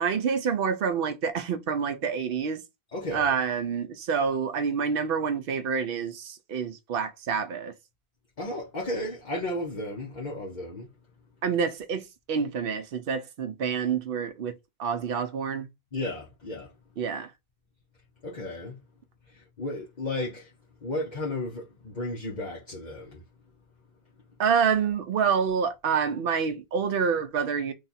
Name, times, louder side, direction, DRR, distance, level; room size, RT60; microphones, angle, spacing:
voice 1, 0.0-2.6 3.1-7.7 11.4-14.5 14.8-15.7 17.0-17.3 24.4-27.7, right 6 dB, 70° right, 0.8 m, -27 dB
voice 2, 2.9-3.3 8.4-10.9 15.9-16.7 18.2-18.8 19.3-20.5 20.8-23.2, left 1 dB, 45° left, 1.0 m, -34 dB
3.3 x 2.4 x 4.0 m
omnidirectional pair, 1.0 m